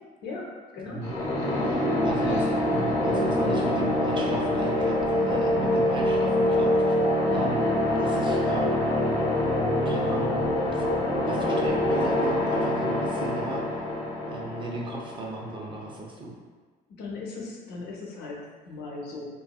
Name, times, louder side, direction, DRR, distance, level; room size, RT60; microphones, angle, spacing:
voice 1, 0.2-1.0 1.4-1.7 2.2-2.5 17.0-19.2, left 3 dB, 80° left, -3 dB, 0.7 m, -38 dB
sound 1, 1.0-15.7, left 1 dB, 20° left, 0.9 m, -25 dB
voice 2, 1.6-6.9 7.3-8.7 9.0-9.2 9.8-10.8 11.2-13.6 14.3-16.3, right 2 dB, 30° right, -1 dB, 0.5 m, -35 dB
2.9 x 2.6 x 2.3 m, 1.4 s
cardioid pair, 110°, 17 cm